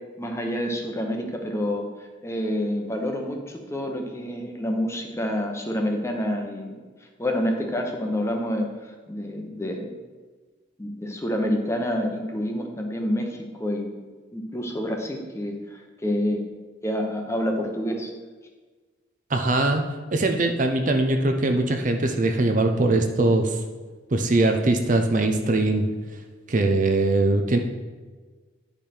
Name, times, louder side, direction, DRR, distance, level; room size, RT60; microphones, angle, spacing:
voice 1, 0.2-6.8 7.2-10.0 10.8-13.9 14.3-16.4 16.8-18.1, equal, 15° left, 2 dB, 0.9 m, -28 dB
voice 2, 19.3-19.8 20.1-23.6 24.1-25.9 26.5-27.6, right 2 dB, 40° right, 5 dB, 0.6 m, -21 dB
10.0 x 5.2 x 4.4 m, 1.4 s
head